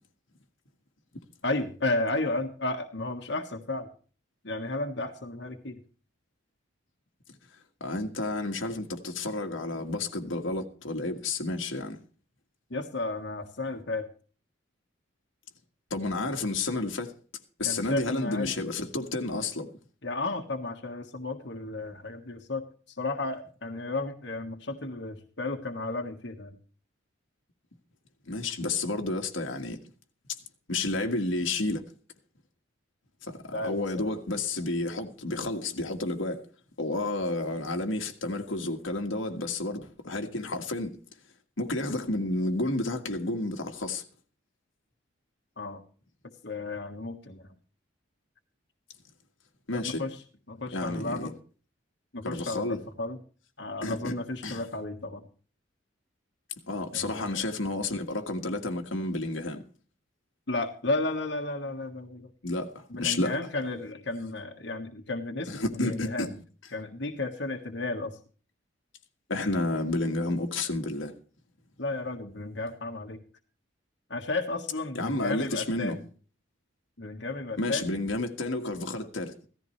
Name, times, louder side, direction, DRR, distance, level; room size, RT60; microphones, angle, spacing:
voice 1, 1.4-3.9 4.4-5.8 12.7-14.1 17.6-18.5 20.0-26.6 33.5-34.1 45.6-45.8 46.4-47.5 49.7-50.2 50.5-51.3 52.1-53.2 53.6-55.2 56.9-57.4 60.5-62.3 62.9-66.3 66.7-68.2 71.8-73.2 74.1-76.0 77.0-77.9, left 2 dB, 60° left, 1.6 m, -33 dB
voice 2, 7.8-12.0 15.9-17.1 17.6-19.7 28.3-29.8 30.7-31.8 33.2-36.4 36.8-41.0 41.6-44.0 49.7-50.0 50.7-51.3 52.2-52.8 53.8-54.1 54.4-54.7 56.7-59.6 62.4-63.3 65.5-66.3 69.3-71.1 74.9-76.0 77.6-79.5, left 2 dB, 80° left, 1.8 m, -31 dB
16.5 x 14.0 x 3.3 m
head